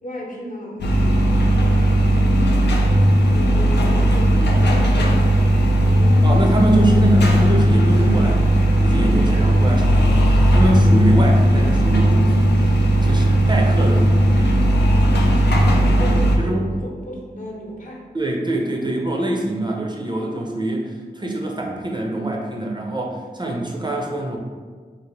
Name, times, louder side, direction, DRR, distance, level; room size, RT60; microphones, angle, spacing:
voice 1, 0.0-1.9 2.3-6.3 14.7-18.0, equal, 50° left, -4 dB, 0.7 m, -36 dB
sound 1, 0.8-16.4, equal, 85° left, 0.4 m, -16 dB
voice 2, 6.2-8.5 8.8-12.7 13.0-14.1 16.0-16.7 18.1-24.4, right 2 dB, 25° right, -1 dB, 0.4 m, -24 dB
2.6 x 2.4 x 3.1 m, 1.5 s
cardioid pair, 45°, 17 cm